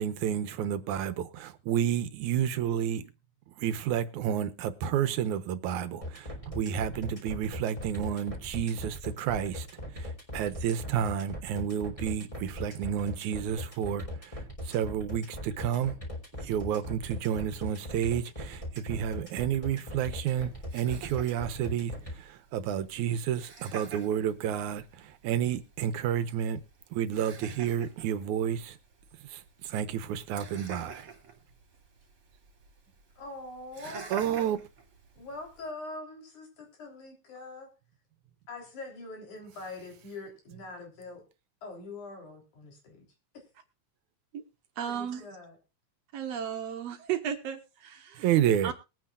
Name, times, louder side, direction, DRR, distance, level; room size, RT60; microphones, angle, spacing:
voice 1, 0.0-3.1 3.6-9.7 10.0-14.4 14.6-15.9 16.4-26.6 26.9-28.8 29.3-31.1 33.9-34.6 48.2-48.7, right 9 dB, 80° right, 2.3 m, -30 dB
sound 1, 6.0-22.1, left 1 dB, 10° left, 3.6 m, -39 dB
Laughter, 19.7-35.7, right 4 dB, 45° right, 3.8 m, -50 dB
voice 2, 33.2-34.1 35.2-37.7 38.5-41.2 41.6-43.0 44.9-45.6, left 2 dB, 75° left, 5.1 m, -43 dB
voice 3, 44.8-45.3 46.1-48.3 48.6-48.7, right 9 dB, 60° right, 2.4 m, -34 dB
21.5 x 9.1 x 2.4 m
omnidirectional pair, 3.5 m